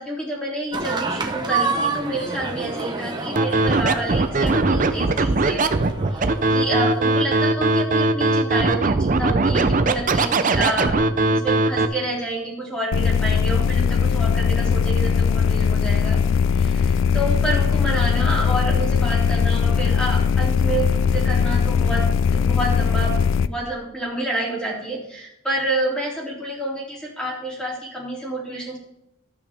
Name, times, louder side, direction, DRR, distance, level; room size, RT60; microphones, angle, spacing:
voice 1, 0.0-5.6 6.1-11.0 11.3-16.2 16.5-20.9 21.1-22.0 22.3-28.8, right 1 dB, 5° left, -4 dB, 2.7 m, -28 dB
sound 1, 0.7-7.4, right 3 dB, 20° right, 1.0 m, -29 dB
Scratching (performance technique), 3.4-11.9, right 2 dB, 40° right, 0.6 m, -19 dB
sound 2, 12.9-23.5, left 6 dB, 75° left, 0.4 m, -20 dB
12.5 x 9.0 x 3.5 m, 0.81 s
head